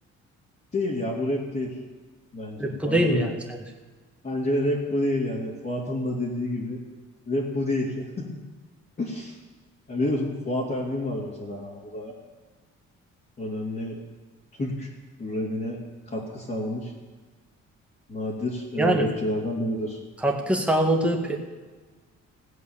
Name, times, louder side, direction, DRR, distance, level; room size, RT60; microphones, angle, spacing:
voice 1, 0.7-1.8 2.3-3.3 4.2-6.8 7.3-8.4 9.0-9.4 9.9-12.1 13.4-14.0 14.6-14.9 15.2-15.8 16.1-16.9 18.1-20.0, left 1 dB, 30° left, -6 dB, 2.8 m, -29 dB
voice 2, 2.6-3.6 18.8-19.1 20.2-21.4, right 1 dB, 5° right, 0 dB, 2.0 m, -23 dB
17.0 x 7.9 x 7.3 m, 1.3 s
cardioid pair, 90°, 30 cm